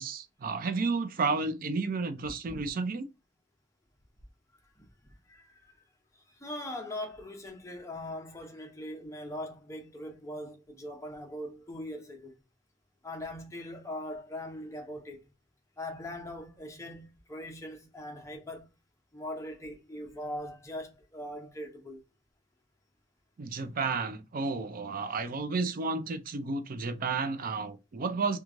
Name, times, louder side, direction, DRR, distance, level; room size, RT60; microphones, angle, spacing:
voice 1, 0.0-3.1 23.4-28.4, right 4 dB, 50° right, 0.4 m, -32 dB
voice 2, 6.4-12.3 13.0-15.2 15.8-18.7 19.1-22.0, left 1 dB, 15° left, 0.7 m, -41 dB
3.0 x 2.3 x 2.5 m
head